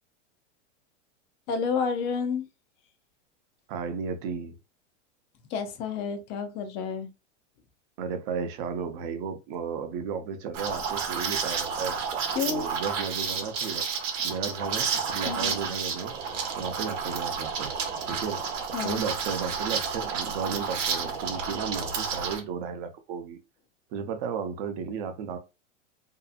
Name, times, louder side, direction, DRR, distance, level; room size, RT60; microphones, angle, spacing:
voice 1, 1.5-2.5 5.5-7.1 12.3-12.7 15.3-15.6 18.7-19.0, left 6 dB, 30° left, 0.4 m, -30 dB
voice 2, 3.7-4.6 8.0-12.0 12.5-13.8 14.2-16.1 16.6-17.7 18.1-18.4 18.8-23.4 23.9-25.4, right 6 dB, 45° right, 0.7 m, -34 dB
Liquid, 10.5-22.4, right 6 dB, 80° right, 0.9 m, -31 dB
2.7 x 2.4 x 2.3 m
supercardioid pair, 140°, 36 cm